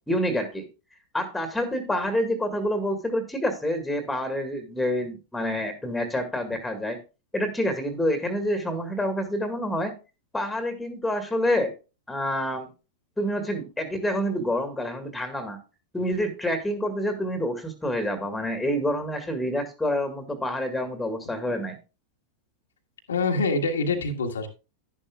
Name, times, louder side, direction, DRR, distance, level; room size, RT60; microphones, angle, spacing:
voice 1, 0.1-0.6 1.1-7.0 7.3-9.9 10.3-11.7 12.1-12.7 13.2-15.6 15.9-21.8, equal, 5° left, 7 dB, 1.9 m, -27 dB
voice 2, 23.1-24.5, left 3 dB, 70° left, 2 dB, 1.5 m, -25 dB
11.0 x 11.0 x 2.3 m, 0.31 s
figure-of-eight pair, 90°, 0 cm